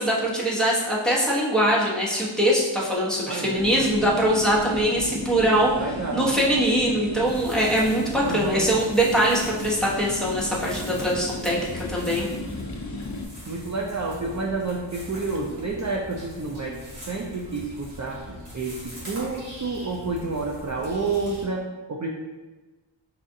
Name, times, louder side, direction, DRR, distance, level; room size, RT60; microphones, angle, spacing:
voice 1, 0.0-5.7 6.1-12.3, right 1 dB, ahead, -6 dB, 0.9 m, -22 dB
voice 2, 3.3-3.6 5.7-6.3 8.2-8.7 13.5-22.1, right 3 dB, 35° right, -1 dB, 0.4 m, -30 dB
sound 1, 3.6-13.2, left 2 dB, 35° left, 0.4 m, -35 dB
Jarry Park Montréal QC - Walking on Dry Plants, 7.2-21.4, left 1 dB, 85° right, 1.4 m, -42 dB
5.5 x 2.4 x 2.6 m, 1.2 s
wide cardioid pair, 50°, 50 cm